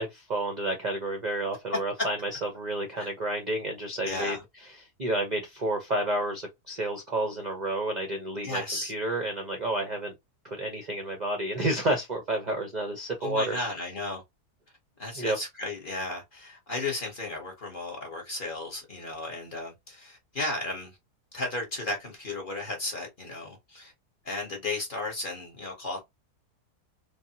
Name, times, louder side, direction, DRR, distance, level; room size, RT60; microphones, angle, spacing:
voice 1, 0.0-4.4 5.0-8.6 8.9-10.1 10.4-13.6 15.1-15.4, right 1 dB, 55° right, 0.5 m, -30 dB
voice 2, 4.0-4.4 8.4-8.9 13.2-14.2 15.0-20.9 21.3-23.9 24.2-26.0, left 2 dB, 40° left, 0.9 m, -34 dB
3.4 x 2.0 x 2.7 m
omnidirectional pair, 1.7 m